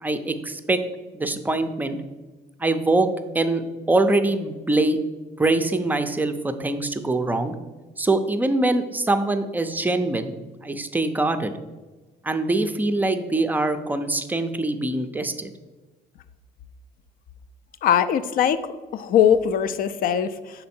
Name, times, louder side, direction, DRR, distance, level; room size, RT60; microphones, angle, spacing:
voice 1, 0.0-0.8 1.1-2.0 2.6-3.1 3.3-3.6 3.9-5.0 5.4-7.5 8.0-10.4 10.6-11.5 12.2-15.5, right 2 dB, 10° right, 8 dB, 0.4 m, -23 dB
voice 2, 17.8-20.7, left 9 dB, 55° left, 13 dB, 0.4 m, -21 dB
6.1 x 3.8 x 4.3 m, 1.2 s
cardioid pair, 110°, 17 cm